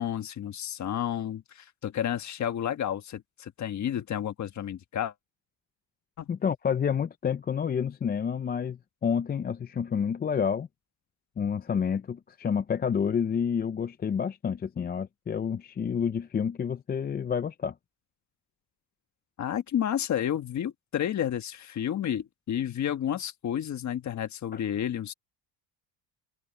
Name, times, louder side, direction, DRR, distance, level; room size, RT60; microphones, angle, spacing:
voice 1, 0.0-5.1 6.2-6.3 19.4-25.1, left 10 dB, 40° left, 1.5 m, -31 dB
voice 2, 6.3-10.7 11.4-17.7, left 7 dB, 20° left, 0.5 m, -29 dB
open air
cardioid pair, 140°, 44 cm